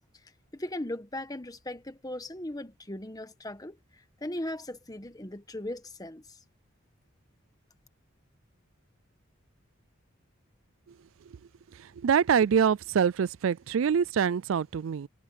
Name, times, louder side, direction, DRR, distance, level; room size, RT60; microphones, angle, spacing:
voice 1, 0.5-6.4, left 1 dB, 20° left, 1.3 m, -38 dB
voice 2, 11.8-15.1, right 7 dB, 75° right, 0.4 m, -25 dB
head